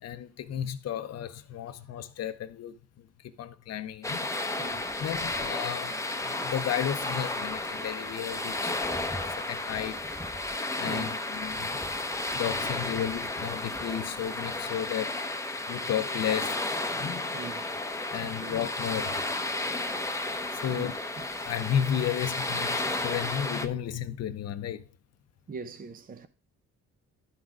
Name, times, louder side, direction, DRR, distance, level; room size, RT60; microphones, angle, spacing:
voice 1, 0.0-3.1 3.4-4.3 5.0-8.8 9.2-10.1 10.8-11.8 12.3-15.2 15.7-16.6 17.0-17.3 18.1-19.2 20.6-20.9 21.4-24.8, left 9 dB, 55° left, 0.7 m, -33 dB
sound 1, 4.0-23.7, left 2 dB, 10° left, 0.8 m, -33 dB
voice 2, 4.6-4.9 10.9-11.2 15.0-15.1 17.3-17.7 18.1-18.6 20.7-21.0 25.5-26.3, right 5 dB, 30° right, 0.6 m, -42 dB
11.0 x 4.0 x 4.7 m
cardioid pair, 90°, 30 cm